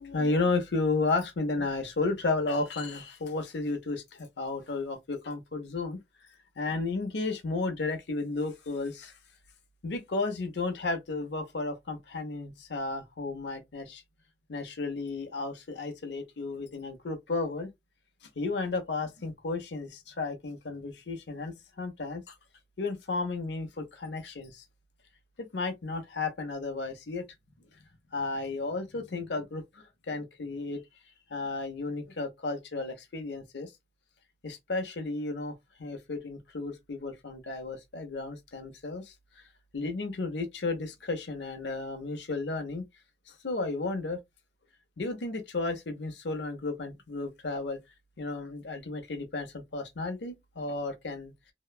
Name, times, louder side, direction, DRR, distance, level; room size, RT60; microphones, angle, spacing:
voice 1, 0.0-6.0 6.6-9.2 9.8-14.0 14.5-17.7 18.2-22.4 22.8-24.6 25.4-27.2 28.1-30.8 31.3-33.7 34.4-39.1 39.7-42.8 43.3-44.2 45.0-47.8 48.2-51.3, left 3 dB, 85° left, 0.7 m, -33 dB
2.9 x 2.1 x 2.3 m
head